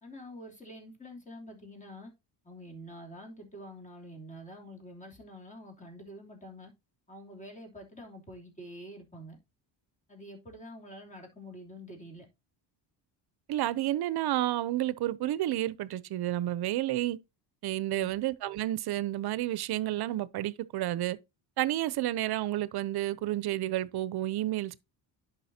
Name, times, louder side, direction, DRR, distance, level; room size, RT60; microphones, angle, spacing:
voice 1, 0.0-2.1 2.4-6.7 7.1-9.4 10.1-12.3 17.9-18.2, equal, 15° left, 3.0 m, -47 dB
voice 2, 13.5-17.2 17.6-21.2 21.6-24.8, right 14 dB, 55° right, 0.7 m, -30 dB
10.5 x 5.5 x 2.8 m
cardioid pair, 115°, 45 cm